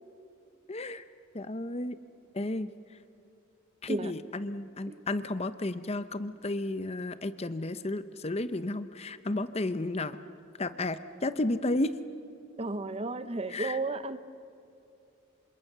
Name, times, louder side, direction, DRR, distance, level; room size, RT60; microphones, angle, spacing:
voice 1, 0.7-1.1 1.3-2.0 2.3-2.7 3.8-10.2 10.6-11.9 13.5-13.8, left 2 dB, 30° left, 12 dB, 0.7 m, -32 dB
voice 2, 12.6-14.2, right 2 dB, 30° right, 12 dB, 0.8 m, -33 dB
27.5 x 26.0 x 6.8 m, 2.7 s
head